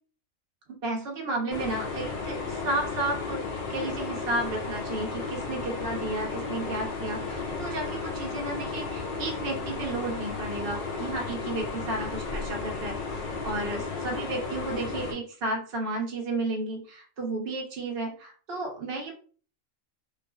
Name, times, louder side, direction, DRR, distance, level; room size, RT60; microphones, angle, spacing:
voice 1, 0.8-19.1, right 2 dB, 55° right, 0 dB, 0.8 m, -33 dB
sound 1, 1.5-15.1, left 4 dB, 70° left, 0.4 m, -34 dB
2.3 x 2.3 x 2.2 m, 0.41 s
omnidirectional pair, 1.5 m